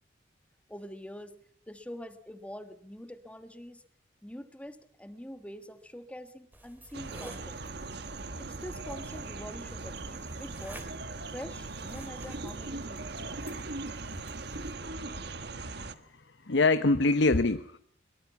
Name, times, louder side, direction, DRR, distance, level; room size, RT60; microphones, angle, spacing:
voice 1, 0.7-1.4 1.7-3.8 4.2-7.6 8.4-10.9 11.3-13.5, equal, 5° left, 10 dB, 1.5 m, -45 dB
sound 1, 6.5-14.7, right 1 dB, 10° right, 3.4 m, -52 dB
sound 2, 6.9-15.9, right 3 dB, 60° right, 1.5 m, -39 dB
voice 2, 15.0-15.6 16.5-17.8, left 3 dB, 65° left, 11 dB, 0.9 m, -25 dB
23.0 x 23.0 x 7.1 m, 0.63 s
head